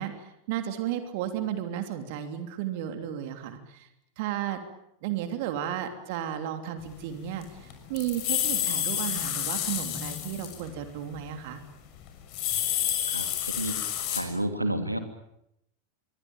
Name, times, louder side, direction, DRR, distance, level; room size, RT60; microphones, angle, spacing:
voice 1, 0.0-3.9 4.2-4.6 5.0-11.6, right 11 dB, 50° right, 7 dB, 3.1 m, -33 dB
sound 1, 7.1-7.2 7.4-10.7 11.0-11.2 12.1-14.2, left 11 dB, 40° left, 6.4 m, -29 dB
voice 2, 13.0-13.8 14.1-15.0, right 1 dB, 85° right, 7 dB, 3.0 m, -30 dB
27.0 x 24.0 x 9.0 m, 0.79 s
figure-of-eight pair, 90°, 0 cm